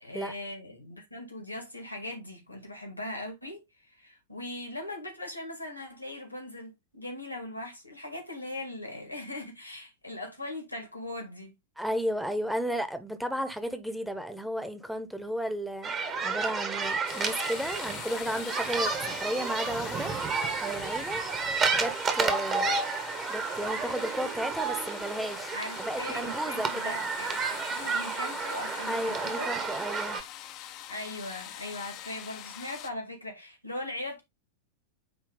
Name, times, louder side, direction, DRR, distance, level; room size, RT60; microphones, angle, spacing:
voice 1, 0.0-11.6 25.5-29.6 30.9-34.2, left 1 dB, 85° left, 2.1 m, -40 dB
voice 2, 11.8-20.2 20.6-21.2 21.7-22.8 23.3-27.0 28.9-30.2, equal, ahead, 1.1 m, -34 dB
sound 1, 15.8-30.2, right 5 dB, 25° right, 1.4 m, -31 dB
sound 2, 17.1-32.9, left 12 dB, 40° left, 0.7 m, -43 dB
9.1 x 3.1 x 3.5 m
figure-of-eight pair, 90°, 0 cm